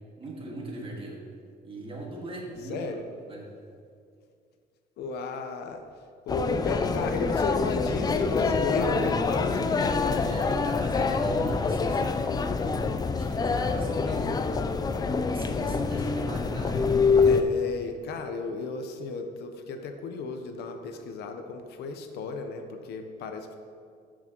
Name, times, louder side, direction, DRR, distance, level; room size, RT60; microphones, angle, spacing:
voice 1, 0.2-1.2 1.6-2.8 3.3-3.5 10.2-14.4 15.3-16.8, right 2 dB, 30° right, -2 dB, 1.8 m, -39 dB
voice 2, 2.6-3.0 5.0-5.8 6.3-9.9 17.2-23.6, left 4 dB, 75° left, 6 dB, 0.8 m, -33 dB
sound 1, 6.3-17.4, left 4 dB, 25° left, 0.4 m, -26 dB
12.5 x 6.1 x 3.0 m, 2.3 s
cardioid pair, 110°, 17 cm